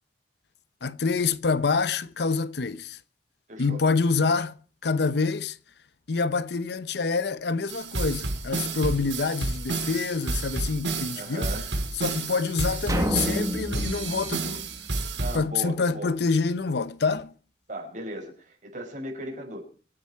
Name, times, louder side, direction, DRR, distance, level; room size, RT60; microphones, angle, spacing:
voice 1, 0.8-3.0 3.6-4.6 4.8-5.6 6.1-11.5 12.0-14.6 15.3-17.3, left 4 dB, 65° left, 0.7 m, -26 dB
voice 2, 3.5-3.8 11.1-11.7 15.2-16.1 17.7-19.6, right 1 dB, 45° right, 5.9 m, -37 dB
sound 1, 7.7-15.4, right 3 dB, 85° right, 5.2 m, -30 dB
sound 2, 12.9-15.3, equal, 20° right, 1.5 m, -30 dB
25.0 x 10.0 x 4.6 m
head